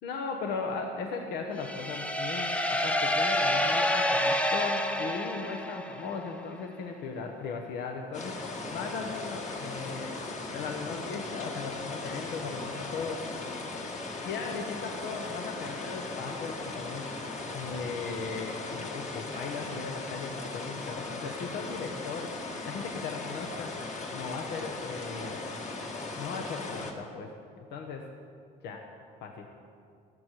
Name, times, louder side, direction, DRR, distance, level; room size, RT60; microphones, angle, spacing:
voice 1, 0.0-10.1 10.5-13.3 14.2-17.1 17.5-22.4 22.6-23.8 24.1-25.4 26.2-27.4 27.7-28.1 28.6-28.9 29.2-29.5, left 5 dB, 85° left, 3 dB, 1.1 m, -37 dB
sound 1, 1.6-6.3, left 1 dB, 10° left, 0.8 m, -28 dB
sound 2, 8.1-26.9, left 3 dB, 45° left, 1.9 m, -38 dB
14.5 x 13.0 x 4.6 m, 2.3 s
cardioid pair, 110°, 17 cm